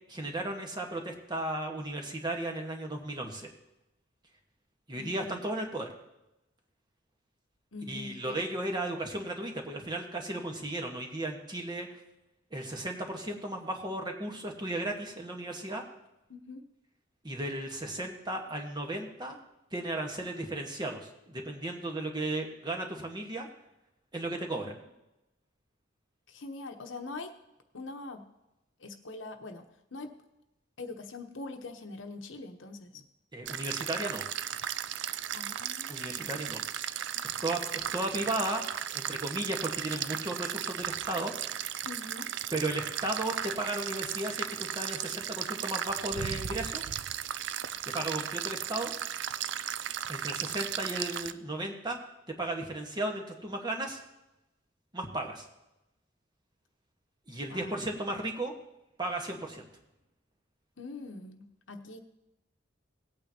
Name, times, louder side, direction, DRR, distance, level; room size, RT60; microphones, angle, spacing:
voice 1, 0.1-3.5 4.9-5.9 7.9-11.9 12.5-15.8 17.2-19.4 19.7-23.5 24.1-24.8 33.3-34.2 35.9-36.6 37.4-38.6 38.9-41.3 42.5-46.8 47.9-48.9 50.1-52.0 52.4-54.0 54.9-55.4 57.3-58.5 59.0-59.7, right 1 dB, 25° right, 2 dB, 1.4 m, -35 dB
voice 2, 4.9-5.4 7.7-8.7 16.3-16.6 26.3-27.3 27.7-28.2 28.8-30.1 30.8-33.0 35.3-36.4 41.8-42.3 57.5-57.9 60.8-62.0, left 3 dB, 85° left, 6 dB, 1.0 m, -43 dB
sound 1, 33.5-51.3, right 10 dB, 65° right, 0.4 m, -36 dB
18.5 x 8.6 x 2.9 m, 0.93 s
head